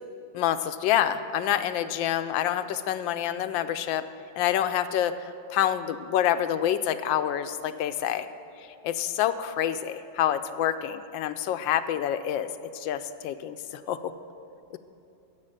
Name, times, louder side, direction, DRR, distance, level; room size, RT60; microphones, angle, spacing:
voice 1, 0.3-4.0 4.4-5.1 5.5-8.3 8.8-12.5 12.7-14.0 14.7-14.8, left 11 dB, 90° left, 11 dB, 1.3 m, -27 dB
10.5 x 7.7 x 9.0 m, 2.7 s
omnidirectional pair, 2.0 m